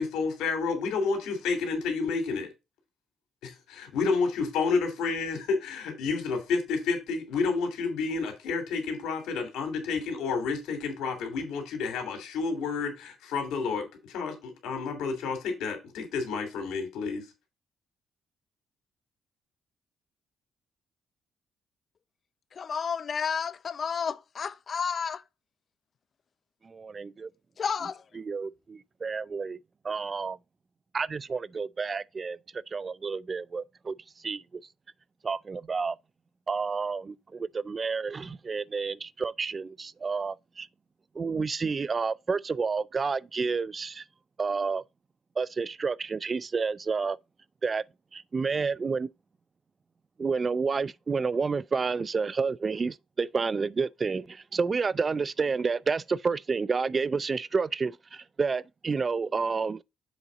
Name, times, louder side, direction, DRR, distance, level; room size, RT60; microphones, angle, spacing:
voice 1, 0.0-2.5 3.4-17.3, left 4 dB, 90° left, 2.4 m, -30 dB
voice 2, 22.5-25.2 27.6-28.0, left 6 dB, 45° left, 0.6 m, -31 dB
voice 3, 26.6-27.3 28.1-29.6 29.8-30.4 30.9-32.4 32.7-33.9 34.2-34.6 35.2-36.0 36.5-40.7 41.2-44.0 44.4-44.8 45.4-47.2 47.6-47.8 48.1-49.1 50.2-59.8, right 4 dB, 35° right, 0.4 m, -30 dB
7.1 x 4.0 x 4.8 m
cardioid pair, 90°, 0 cm